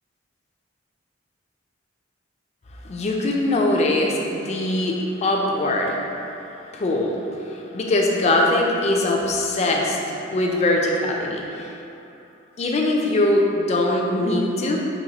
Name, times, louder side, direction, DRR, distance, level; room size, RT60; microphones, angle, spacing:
voice 1, 2.8-6.0 6.7-7.2 7.4-11.7 12.6-14.8, left 1 dB, 35° left, 0 dB, 0.3 m, -22 dB
4.2 x 2.6 x 2.8 m, 2.7 s
head